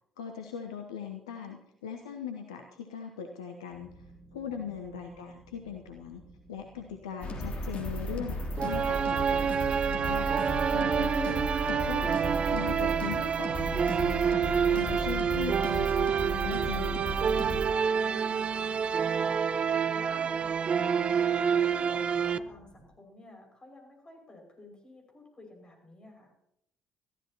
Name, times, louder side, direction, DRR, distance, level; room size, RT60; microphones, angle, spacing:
voice 1, 0.2-4.0 4.3-6.2 6.5-10.3 10.7-11.4 11.6-12.2 12.5-14.4 14.7-17.0, left 7 dB, 75° left, 4 dB, 0.9 m, -40 dB
sound 1, 3.7-22.9, right 2 dB, 65° right, 5.8 m, -56 dB
sound 2, 7.2-17.7, equal, 45° left, 3.0 m, -35 dB
sound 3, 8.6-22.4, right 7 dB, 35° right, 0.5 m, -28 dB
voice 2, 17.9-26.3, left 2 dB, 30° left, 2 dB, 5.9 m, -52 dB
21.0 x 14.5 x 2.9 m, 0.78 s
figure-of-eight pair, 50°, 3 cm